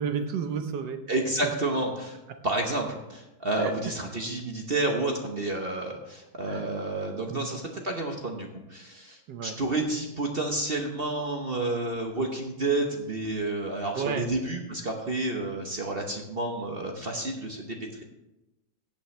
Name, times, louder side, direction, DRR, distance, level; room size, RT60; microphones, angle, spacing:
voice 1, 0.0-1.0 1.4-1.5 2.3-2.4 3.6-3.7 6.5-6.7 7.3-7.5 9.3-9.6 13.9-14.3, right 6 dB, 65° right, 7 dB, 1.3 m, -32 dB
voice 2, 1.1-2.2 2.4-18.0, right 2 dB, 45° right, 2 dB, 0.8 m, -30 dB
15.0 x 8.6 x 3.2 m, 0.98 s
omnidirectional pair, 2.3 m